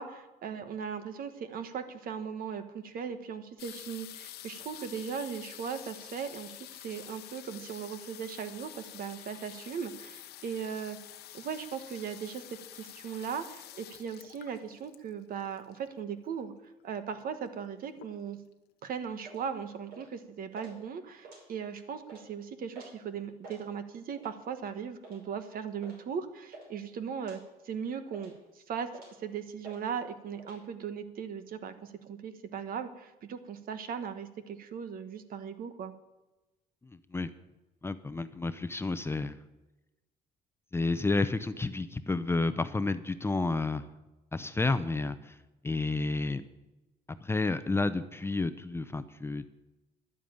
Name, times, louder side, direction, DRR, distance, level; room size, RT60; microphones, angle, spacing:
voice 1, 0.0-11.0 11.3-12.4 12.7-16.5 16.8-18.4 18.8-27.4 27.6-28.9 29.2-35.9, right 7 dB, 60° right, 9 dB, 1.4 m, -38 dB
sound 1, 3.6-16.1 16.9-17.0 17.2-17.6 17.9-18.5 19.1-19.2 19.3-19.4, left 13 dB, 75° left, 1.0 m, -48 dB
sound 2, 19.2-19.5 19.9-20.2 20.5-20.7 21.1-21.7 22.0-22.2 22.7-23.0 23.3-23.6 24.2-24.4 25.0-25.2 25.8-26.0 26.3-26.7 27.2-27.4 27.8-28.4 28.9-29.2 29.6-29.8 30.1-30.6, right 3 dB, 75° right, 5.7 m, -50 dB
voice 2, 37.8-39.4 40.7-43.9 44.3-45.4 45.6-46.4 47.2-49.5, left 3 dB, 15° left, 12 dB, 0.6 m, -30 dB
11.0 x 9.3 x 8.9 m, 1.0 s
cardioid pair, 110°, 17 cm